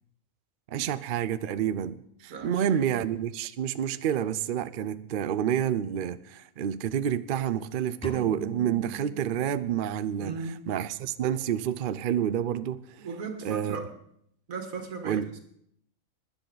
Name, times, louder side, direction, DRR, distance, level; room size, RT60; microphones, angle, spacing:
voice 1, 0.7-12.8 13.4-13.8 15.0-15.3, right 9 dB, 55° right, 0.6 m, -29 dB
voice 2, 2.3-2.8 10.2-10.7 13.0-13.9 14.5-15.4, right 4 dB, 90° right, 2.0 m, -37 dB
sound 1, 8.0-10.1, right 1 dB, 5° left, 0.5 m, -43 dB
20.0 x 10.0 x 4.0 m
omnidirectional pair, 1.4 m